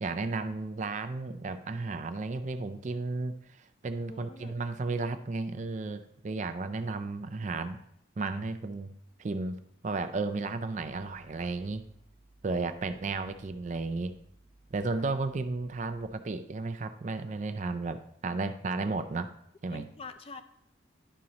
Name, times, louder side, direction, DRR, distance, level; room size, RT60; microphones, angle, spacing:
voice 1, 0.0-7.8 8.2-8.9 9.2-11.8 12.4-14.1 14.7-19.3 19.6-19.8, right 3 dB, 40° right, 10 dB, 0.4 m, -33 dB
voice 2, 4.1-4.5 6.8-6.9 10.4-10.5 12.7-13.1 15.0-15.1 19.7-20.4, left 3 dB, 30° left, 9 dB, 0.4 m, -47 dB
sound 1, 10.8-16.1, right 2 dB, 80° left, 1.7 m, -61 dB
11.0 x 5.1 x 2.9 m, 0.72 s
head